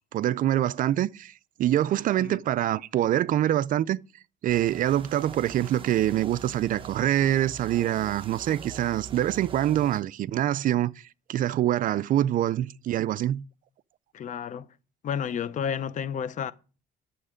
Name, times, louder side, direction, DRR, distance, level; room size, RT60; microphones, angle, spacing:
voice 1, 0.1-1.3 1.6-4.0 4.4-10.9 11.3-13.4, right 12 dB, 55° right, 0.4 m, -25 dB
sound 1, 4.5-10.0, right 6 dB, 30° right, 1.0 m, -42 dB
voice 2, 14.1-14.7 15.0-16.5, left 7 dB, 50° left, 0.7 m, -31 dB
11.0 x 7.3 x 5.0 m
cardioid pair, 110°, 17 cm